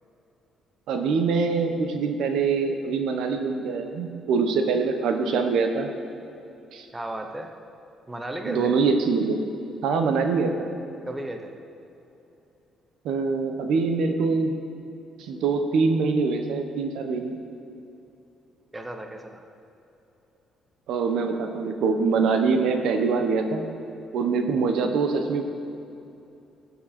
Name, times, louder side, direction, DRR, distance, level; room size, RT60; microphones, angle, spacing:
voice 1, 0.9-5.9 6.7-6.9 8.5-9.4 9.8-10.7 13.0-14.6 15.2-17.3 20.9-23.7 24.1-25.4, right 4 dB, 75° right, 5 dB, 1.1 m, -24 dB
voice 2, 6.9-7.5 8.1-8.7 11.1-11.5 18.7-19.4 24.5-24.7, right 1 dB, 10° right, 4 dB, 0.7 m, -34 dB
18.5 x 7.5 x 4.3 m, 2.9 s
cardioid pair, 150°, 0 cm